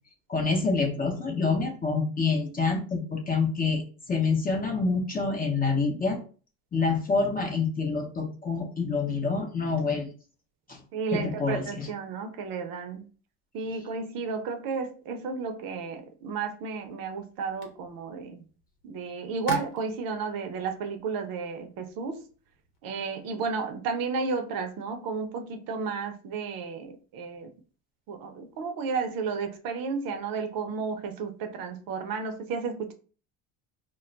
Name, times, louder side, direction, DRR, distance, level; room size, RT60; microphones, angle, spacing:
voice 1, 0.3-3.8 4.1-6.2 6.7-10.1 10.7-10.8 11.1-11.9, left 4 dB, 20° left, 1 dB, 0.7 m, -27 dB
voice 2, 10.9-13.0 13.5-18.4 18.8-22.2 22.8-27.5 28.1-32.9, right 5 dB, 60° right, 6 dB, 0.6 m, -32 dB
sound 1, 16.6-22.8, left 1 dB, 75° left, 1.0 m, -45 dB
2.2 x 2.1 x 3.8 m, 0.39 s
cardioid pair, 105°, 40 cm